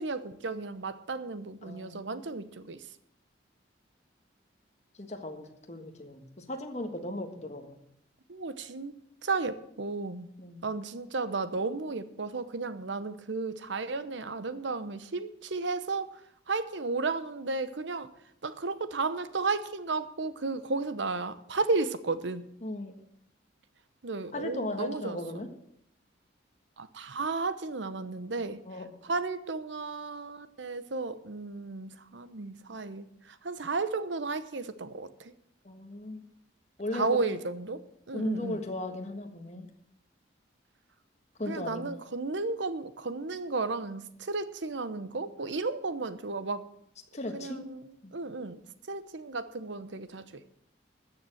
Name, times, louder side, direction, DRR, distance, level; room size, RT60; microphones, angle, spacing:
voice 1, 0.0-2.8 8.3-8.9 9.2-10.3 10.6-16.2 16.5-18.1 18.4-22.5 24.0-25.5 26.8-28.6 29.0-35.3 36.9-38.6 41.5-46.7 47.3-48.6 48.9-50.4, right 3 dB, 75° right, 13 dB, 0.9 m, -33 dB
voice 2, 1.6-2.0 5.0-7.8 10.4-10.7 22.6-22.9 24.3-25.5 28.6-28.9 35.6-36.2 36.8-37.4 38.1-39.7 41.4-41.8 47.1-47.7 48.0-48.1, left 1 dB, 35° left, 5 dB, 1.6 m, -37 dB
13.5 x 6.9 x 7.8 m, 0.72 s
head